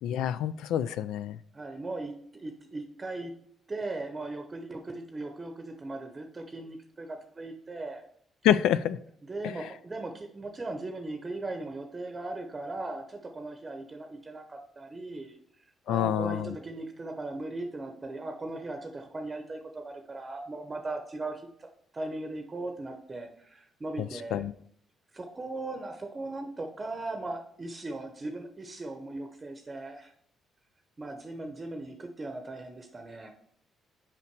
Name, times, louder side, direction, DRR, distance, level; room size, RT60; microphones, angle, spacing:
voice 1, 0.0-1.4 8.4-9.0 9.4-9.5 15.9-16.5 24.3-24.5, left 11 dB, 90° left, 15 dB, 0.3 m, -27 dB
voice 2, 1.5-3.3 3.7-8.0 9.3-15.4 15.9-21.7 21.9-24.4 25.1-30.1 31.0-33.3, right 2 dB, 25° right, 4 dB, 0.8 m, -38 dB
5.7 x 5.2 x 4.6 m, 0.67 s
cardioid pair, 90°, 0 cm